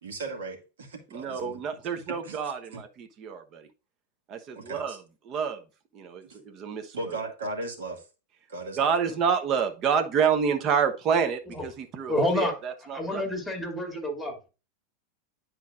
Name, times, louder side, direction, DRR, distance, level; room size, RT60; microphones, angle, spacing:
voice 1, 0.0-1.6 2.2-2.4 2.7-2.8 4.7-5.0 6.3-6.4 6.9-8.0 8.5-8.9, right 2 dB, 65° right, 2 dB, 2.0 m, -36 dB
voice 2, 1.1-3.7 4.3-5.6 5.9-7.2 8.8-13.2, right 6 dB, 35° right, 6 dB, 1.1 m, -28 dB
voice 3, 12.1-12.5 12.9-14.4, left 1 dB, ahead, 2 dB, 2.5 m, -28 dB
10.5 x 4.6 x 2.5 m, 0.31 s
figure-of-eight pair, 90°, 0 cm